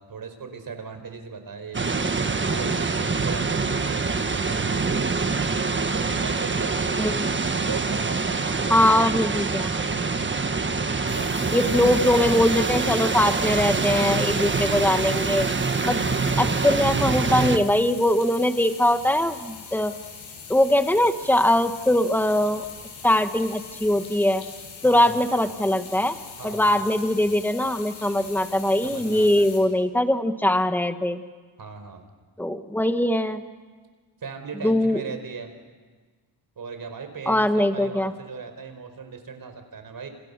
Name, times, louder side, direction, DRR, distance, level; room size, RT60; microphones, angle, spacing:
voice 1, 0.0-2.1 2.5-5.2 5.8-7.1 7.6-9.7 11.0-12.2 15.7-16.0 24.8-25.3 26.4-26.9 28.8-29.5 31.6-32.0 34.2-35.5 36.6-40.1, right 5 dB, 45° right, 7 dB, 4.6 m, -38 dB
sound 1, 1.7-17.6, right 4 dB, 25° right, 1.5 m, -25 dB
voice 2, 7.0-7.3 8.7-9.7 11.5-15.5 15.8-16.0 16.4-20.0 20.5-22.6 23.0-24.4 24.8-26.1 26.4-31.2 32.4-33.4 34.6-35.0 37.3-38.1, left 1 dB, 5° left, 8 dB, 1.5 m, -21 dB
sound 2, 11.1-29.6, left 6 dB, 90° left, 6.9 m, -42 dB
29.5 x 29.0 x 6.8 m, 1.4 s
cardioid pair, 110°, 46 cm